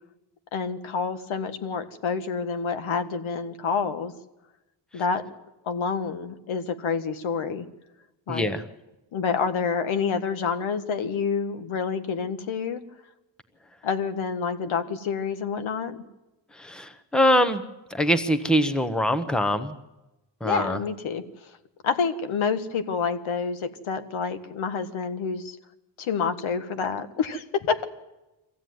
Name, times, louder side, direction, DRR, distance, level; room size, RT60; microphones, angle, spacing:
voice 1, 0.5-4.1 4.9-5.3 5.6-7.7 8.3-8.5 9.1-12.8 13.8-16.0 20.4-21.2 21.8-25.6 26.0-27.8, left 5 dB, 85° left, 10 dB, 1.6 m, -28 dB
voice 2, 8.3-8.6 16.6-17.6 17.9-19.7 20.4-20.8, equal, ahead, 10 dB, 0.9 m, -23 dB
23.5 x 15.5 x 9.4 m, 1.0 s
wide cardioid pair, 160°, 47 cm